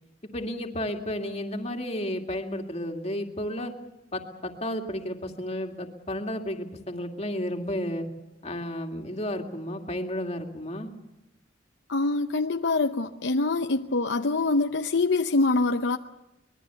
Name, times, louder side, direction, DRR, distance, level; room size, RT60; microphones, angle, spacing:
voice 1, 0.3-3.7 4.1-8.1 8.4-10.9, left 1 dB, 35° left, 3 dB, 2.4 m, -32 dB
voice 2, 11.9-16.0, left 3 dB, 65° left, 7 dB, 0.7 m, -25 dB
24.5 x 21.5 x 7.0 m, 0.94 s
head